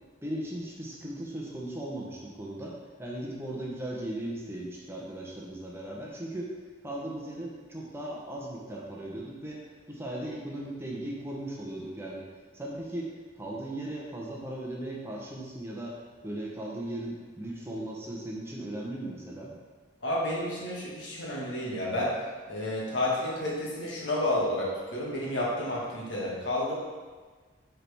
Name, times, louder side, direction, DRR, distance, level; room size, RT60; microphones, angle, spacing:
voice 1, 0.2-6.5 6.8-9.6 9.9-12.2 12.5-16.0 16.2-19.5, right 1 dB, 15° right, -3 dB, 0.9 m, -37 dB
voice 2, 20.0-22.1 22.5-26.7, left 1 dB, 80° left, -5 dB, 1.9 m, -30 dB
8.2 x 4.5 x 3.6 m, 1.4 s
head